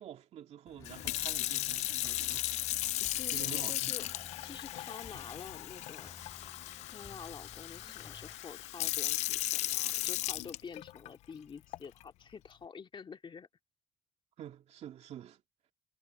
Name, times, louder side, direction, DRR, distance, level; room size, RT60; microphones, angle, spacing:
voice 1, 0.0-2.5 3.3-3.9 14.4-15.4, right 10 dB, 75° right, 2.5 m, -48 dB
Sink (filling or washing) / Fill (with liquid), 0.8-11.1 11.7-12.0, left 16 dB, 85° left, 0.6 m, -36 dB
sound 1, 0.8-8.4, left 3 dB, 30° left, 4.3 m, -55 dB
voice 2, 3.2-4.0 4.4-6.1 6.8-13.5, left 6 dB, 45° left, 2.7 m, -48 dB
supercardioid pair, 65°, 11 cm